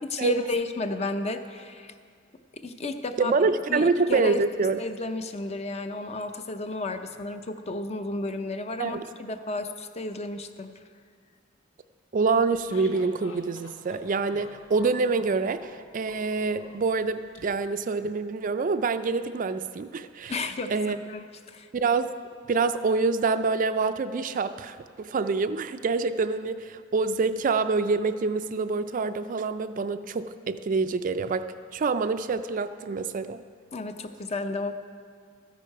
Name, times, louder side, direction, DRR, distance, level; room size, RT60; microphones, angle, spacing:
voice 1, 0.0-1.9 2.5-3.3 3.7-4.5 4.8-10.7 20.3-21.7 33.7-34.7, left 2 dB, 35° left, 8 dB, 0.6 m, -32 dB
voice 2, 3.2-4.8 8.8-9.0 12.1-20.3 20.7-21.0 21.7-22.1 22.5-31.5 31.7-33.4, right 4 dB, 40° right, 11 dB, 0.4 m, -26 dB
sound 1, 12.3-17.4, left 2 dB, 90° left, 1.3 m, -48 dB
13.5 x 10.0 x 4.7 m, 2.1 s
head